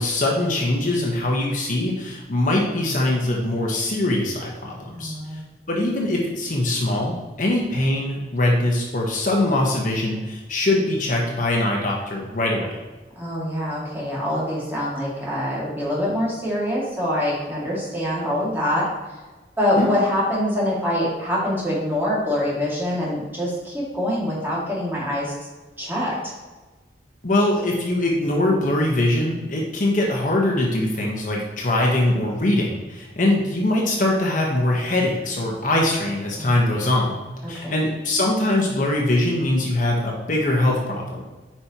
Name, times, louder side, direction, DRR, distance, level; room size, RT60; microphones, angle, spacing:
voice 1, 0.0-5.1 5.7-12.8 19.8-19.9 27.2-37.2 37.5-41.2, left 1 dB, 45° left, -1 dB, 1.2 m, -22 dB
voice 2, 4.9-5.4 13.2-18.9 19.6-25.3 25.8-26.3 36.4-36.7 37.4-37.9, left 1 dB, 10° right, -6 dB, 2.3 m, -25 dB
8.8 x 5.2 x 3.0 m, 1.2 s
head